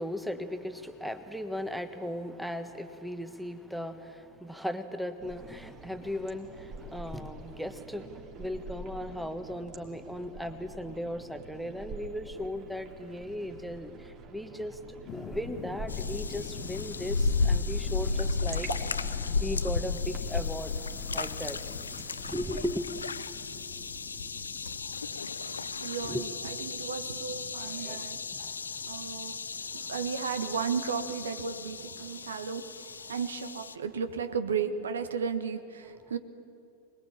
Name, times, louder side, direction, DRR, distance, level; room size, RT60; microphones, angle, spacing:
voice 1, 0.0-14.8 15.1-18.7 19.1-20.7 21.1-21.6 22.3-23.1 26.0-26.2 27.6-29.1 29.6-29.9 32.1-32.3, left 1 dB, ahead, 8 dB, 1.4 m, -37 dB
sound 1, 5.2-22.7, right 2 dB, 35° right, 3.0 m, -46 dB
sound 2, 15.0-33.9, left 9 dB, 30° left, 1.0 m, -49 dB
sound 3, 15.9-33.7, left 4 dB, 75° left, 0.8 m, -34 dB
voice 2, 25.6-28.3 28.8-29.4 29.7-36.2, right 6 dB, 65° right, 10 dB, 1.4 m, -34 dB
25.5 x 21.0 x 8.8 m, 2.5 s
figure-of-eight pair, 90°, 0 cm